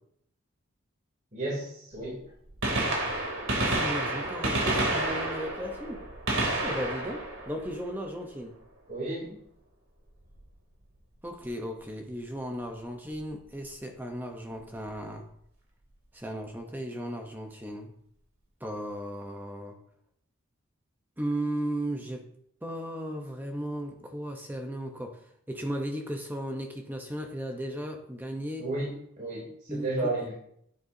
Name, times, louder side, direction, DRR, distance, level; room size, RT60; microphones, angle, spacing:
voice 1, 1.3-2.2 8.9-9.3 28.6-28.9 29.2-30.3, right 2 dB, 40° right, -5 dB, 2.8 m, -32 dB
Gunshot gunfire, 1.9-2.0 2.5-8.3 10.3-10.4 11.4-11.5 13.1-13.2 14.6-14.7 14.9-15.0, right 2 dB, 70° right, 2.8 m, -30 dB
voice 2, 3.6-6.1 6.6-8.5 11.2-15.2 16.1-17.9 18.6-19.8 21.2-22.3 22.6-25.2 25.5-28.7 29.7-30.1, equal, 10° right, 3 dB, 0.8 m, -36 dB
10.0 x 9.6 x 2.7 m, 0.69 s
head